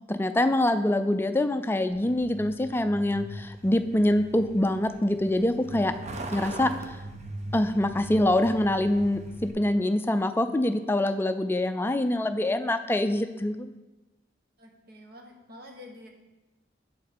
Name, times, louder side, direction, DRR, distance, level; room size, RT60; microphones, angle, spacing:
voice 1, 0.1-5.9 6.3-6.7 7.5-13.7, left 1 dB, 10° left, 9 dB, 0.3 m, -25 dB
Truck, 1.9-9.5, right 1 dB, 40° right, 0.7 m, -40 dB
voice 2, 14.6-16.1, left 1 dB, 60° right, 2 dB, 1.1 m, -48 dB
7.5 x 5.3 x 4.2 m, 1.1 s
head